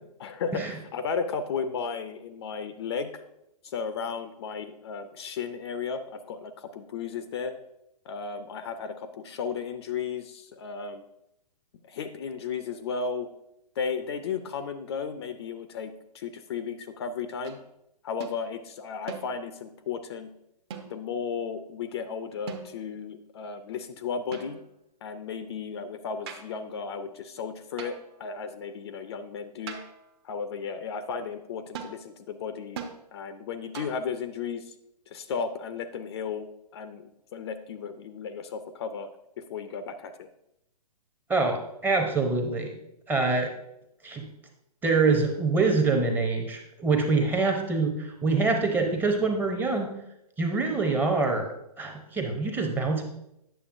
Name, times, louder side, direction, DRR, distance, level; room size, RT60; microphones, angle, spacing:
voice 1, 0.2-3.2 3.6-7.5 8.1-11.0 11.8-13.3 13.8-17.6 18.0-20.3 20.9-24.6 25.0-29.8 30.2-32.8 33.1-34.7 35.1-39.1 39.4-40.3 47.2-47.4, left 6 dB, 40° left, 10 dB, 0.4 m, -34 dB
sound 1, 17.4-17.7 18.2-18.4 19.1-19.6 20.7-21.2 22.5-23.0 24.3-24.8 26.3-26.6 27.8-28.2 29.7-30.1 31.7-32.0 32.8-33.0 33.7-34.1, right 6 dB, 40° right, 0.7 m, -41 dB
voice 2, 41.3-42.7 43.1-43.5 44.0-44.3 44.8-49.9 50.4-51.5 51.8-53.0, right 3 dB, 10° right, 3 dB, 0.6 m, -25 dB
8.9 x 6.6 x 2.5 m, 0.83 s
hypercardioid pair, 135°, 21 cm